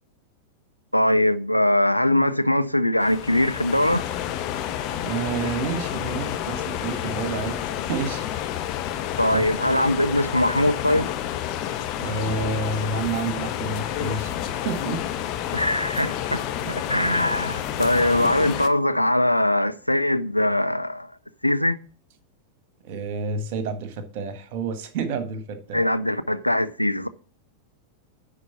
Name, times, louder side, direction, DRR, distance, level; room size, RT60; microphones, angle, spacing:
voice 1, 0.9-4.1 9.2-11.1 15.5-16.4 16.7-21.1 21.4-21.8 25.7-27.1, left 1 dB, 90° left, 0.4 m, -21 dB
sound 1, 3.0-18.7, left 11 dB, 40° left, 0.8 m, -30 dB
voice 2, 5.0-7.6 7.9-8.3 9.3-9.4 12.0-14.3 14.6-15.0 16.6-16.7 22.8-25.8, right 4 dB, 45° right, 1.4 m, -29 dB
10.0 x 4.0 x 5.8 m
figure-of-eight pair, 90°, 0 cm